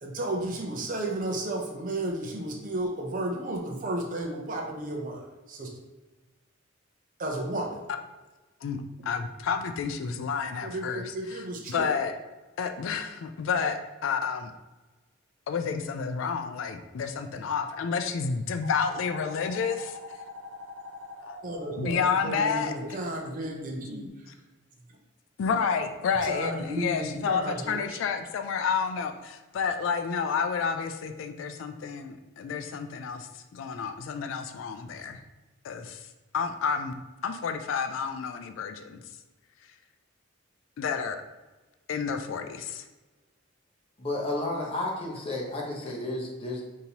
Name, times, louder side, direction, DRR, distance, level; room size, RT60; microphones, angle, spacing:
voice 1, 0.0-5.2 5.5-5.7 7.2-7.8 10.6-11.9 21.4-24.0 26.2-28.0, right 1 dB, 40° right, 0 dB, 0.6 m, -33 dB
voice 2, 9.0-11.4 11.7-12.1 12.6-14.5 15.5-20.0 21.2-21.4 21.8-23.0 25.4-35.2 35.6-36.0 36.3-39.0 40.8-41.2 41.9-42.8, left 6 dB, 70° left, 7 dB, 0.3 m, -30 dB
sound 1, 18.6-24.1, left 1 dB, 85° right, 0.6 m, -43 dB
voice 3, 44.0-46.6, left 2 dB, 30° left, -2 dB, 0.8 m, -32 dB
5.2 x 2.8 x 2.9 m, 1.2 s
head